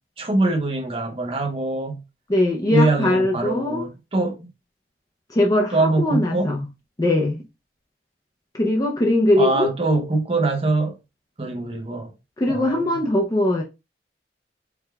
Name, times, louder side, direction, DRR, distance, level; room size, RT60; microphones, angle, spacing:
voice 1, 0.2-2.0 2.7-4.5 5.7-6.5 9.4-11.0 11.4-12.1 12.5-13.0, right 2 dB, 35° right, 0.7 m, -23 dB
voice 2, 2.3-3.9 5.3-6.7 7.0-7.4 8.5-9.7 12.4-13.6, left 1 dB, 20° left, 0.6 m, -21 dB
4.7 x 2.3 x 3.4 m
head